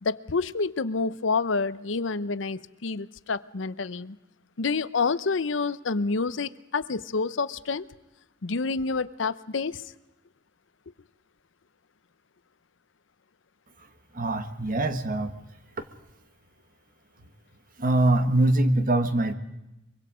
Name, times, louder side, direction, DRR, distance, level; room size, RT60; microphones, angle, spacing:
voice 1, 0.0-4.2 4.6-7.9 8.4-9.8, left 4 dB, 85° left, 16 dB, 0.7 m, -28 dB
voice 2, 14.1-15.3 15.8-15.9 17.8-19.3, right 2 dB, 50° right, 9 dB, 1.5 m, -23 dB
24.0 x 23.5 x 5.1 m, 0.94 s
head